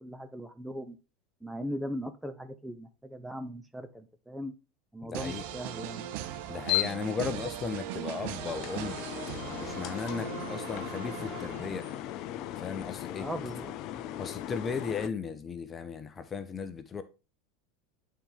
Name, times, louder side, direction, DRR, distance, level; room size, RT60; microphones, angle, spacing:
voice 1, 0.0-1.0 1.4-4.5 4.9-6.1 13.2-14.2, equal, 5° right, 0.8 m, -39 dB
voice 2, 5.0-5.4 6.5-9.0 9.6-11.9 12.6-13.3 14.2-17.0, left 5 dB, 25° left, 1.0 m, -36 dB
sound 1, 5.1-12.1, right 11 dB, 60° right, 0.8 m, -39 dB
sound 2, 6.0-15.1, left 14 dB, 50° left, 0.5 m, -37 dB
9.0 x 4.4 x 3.4 m
hypercardioid pair, 85°, 0 cm